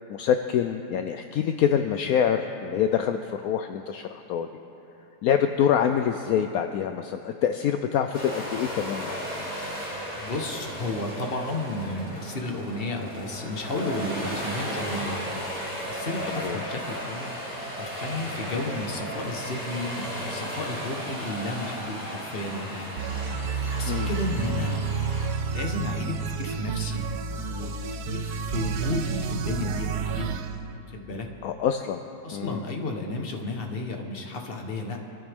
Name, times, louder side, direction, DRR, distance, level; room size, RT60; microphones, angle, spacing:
voice 1, 0.1-4.5 5.2-9.2 16.4-16.6 23.9-24.1 31.4-32.0 32.3-32.6, left 8 dB, 70° left, 7 dB, 0.8 m, -25 dB
sound 1, 8.1-25.3, equal, 5° right, 4.0 m, -35 dB
voice 2, 10.1-17.4 17.7-22.9 23.7-24.8 25.5-27.0 27.5-27.7 28.1-30.4 30.9-31.3 32.2-35.0, left 2 dB, 35° left, 3 dB, 1.3 m, -32 dB
sound 2, 23.0-30.5, right 5 dB, 65° right, 1.2 m, -30 dB
24.5 x 14.0 x 3.6 m, 2.9 s
omnidirectional pair, 2.0 m